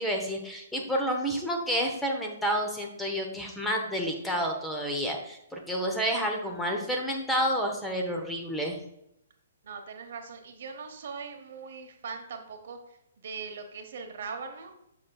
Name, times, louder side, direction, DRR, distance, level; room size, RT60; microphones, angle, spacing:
voice 1, 0.0-8.8, equal, 5° left, 1 dB, 1.0 m, -30 dB
voice 2, 9.6-14.7, right 5 dB, 60° right, 5 dB, 1.0 m, -40 dB
7.6 x 5.7 x 2.3 m, 0.79 s
figure-of-eight pair, 125°, 0 cm